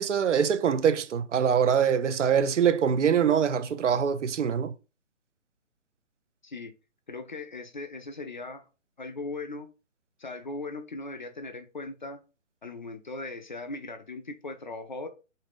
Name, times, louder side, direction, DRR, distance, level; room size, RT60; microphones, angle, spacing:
voice 1, 0.0-4.7, right 7 dB, 65° right, 0.6 m, -24 dB
voice 2, 6.4-6.7 7.1-8.7 9.0-9.7 10.2-12.2 12.6-15.1, left 3 dB, 40° left, 0.4 m, -38 dB
3.7 x 2.6 x 3.5 m
hypercardioid pair, 160°, 39 cm